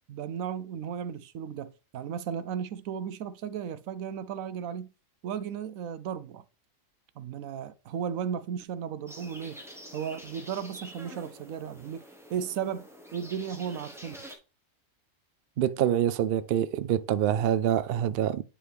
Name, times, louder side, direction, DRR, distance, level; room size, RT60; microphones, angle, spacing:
voice 1, 0.1-4.9 5.2-6.4 7.2-9.6 9.9-12.0 12.3-14.4, right 8 dB, 80° right, 1.1 m, -35 dB
sound 1, 9.1-14.4, equal, ahead, 1.2 m, -47 dB
voice 2, 15.6-18.4, right 10 dB, 65° right, 0.6 m, -26 dB
8.7 x 4.7 x 3.4 m
omnidirectional pair, 1.4 m